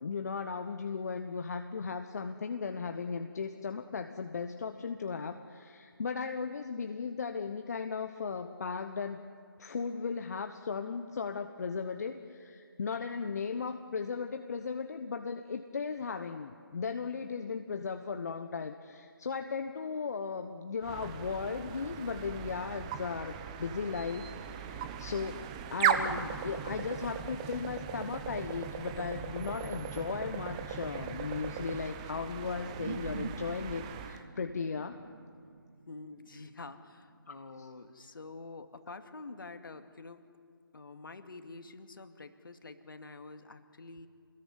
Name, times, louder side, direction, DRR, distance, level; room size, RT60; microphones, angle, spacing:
voice 1, 0.0-9.2 9.6-25.4 25.7-35.0 37.3-37.7, left 5 dB, 45° left, 6 dB, 1.2 m, -36 dB
sound 1, 20.8-34.2, right 8 dB, 15° right, 0.9 m, -37 dB
sound 2, 32.6-37.4, right 5 dB, 40° right, 2.9 m, -45 dB
voice 2, 35.9-40.3 40.7-44.1, left 3 dB, 60° left, 7 dB, 2.3 m, -47 dB
27.5 x 20.5 x 9.7 m, 2.3 s
figure-of-eight pair, 155°, 13 cm